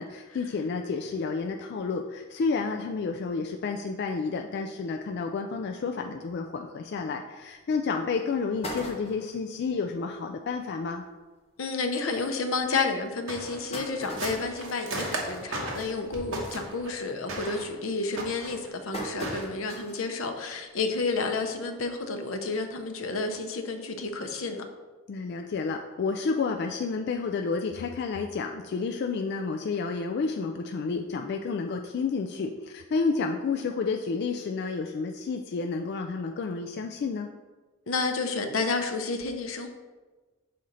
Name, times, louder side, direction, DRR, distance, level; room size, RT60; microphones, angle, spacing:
voice 1, 0.0-11.0 15.8-16.1 25.1-37.3, left 4 dB, 55° left, 4 dB, 0.3 m, -30 dB
sound 1, 7.5-7.6 8.1-8.2 8.4-9.5 10.0-10.1 10.4-10.5 10.8-11.0 11.7-11.8 12.3-12.4 13.2-16.0 16.4-16.7 17.1-17.5 18.1-20.1 20.5-20.6 21.8-21.9, equal, 30° left, 1.2 m, -40 dB
voice 2, 11.6-24.6 37.9-39.7, left 3 dB, 80° left, 6 dB, 0.7 m, -30 dB
sound 2, 12.1-12.2 12.7-12.8 13.3-16.9 17.3-17.7 18.2-18.7 19.2-19.4, right 2 dB, 70° right, 1.1 m, -36 dB
6.3 x 4.2 x 3.9 m, 1.3 s
head